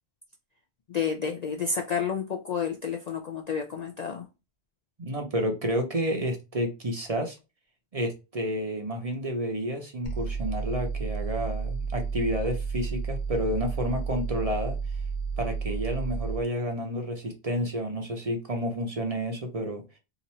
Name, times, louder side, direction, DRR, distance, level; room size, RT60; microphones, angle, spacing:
voice 1, 0.9-4.3, left 6 dB, 55° left, 0.4 m, -30 dB
voice 2, 5.0-7.4 7.9-14.8 15.4-19.8, equal, 40° right, 0.7 m, -30 dB
sound 1, 10.0-16.4, right 5 dB, 90° left, 1.2 m, -31 dB
2.9 x 2.5 x 4.2 m
omnidirectional pair, 1.1 m